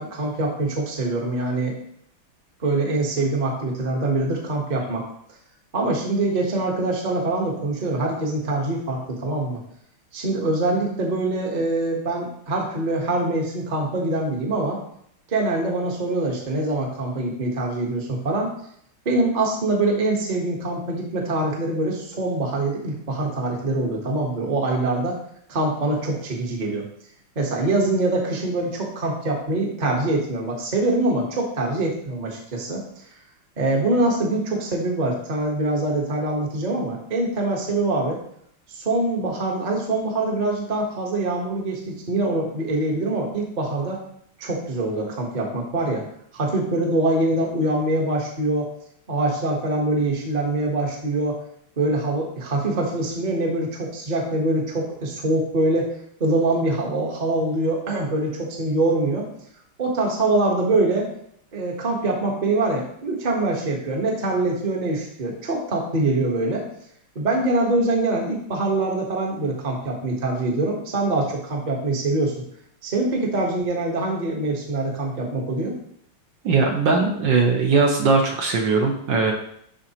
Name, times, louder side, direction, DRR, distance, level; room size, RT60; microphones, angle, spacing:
voice 1, 0.0-1.7 2.6-5.0 5.7-9.6 10.1-14.8 15.3-18.5 19.0-25.2 25.5-26.9 27.3-32.8 33.6-38.2 38.7-44.0 44.4-46.0 46.3-48.7 49.1-51.4 51.8-55.9 56.2-59.3 59.8-61.1 61.5-66.6 67.1-72.4 72.8-75.7, right 2 dB, 30° right, 0 dB, 1.0 m, -24 dB
voice 2, 76.4-79.3, right 4 dB, 65° right, 1 dB, 1.4 m, -19 dB
11.0 x 3.9 x 2.9 m, 0.68 s
omnidirectional pair, 2.4 m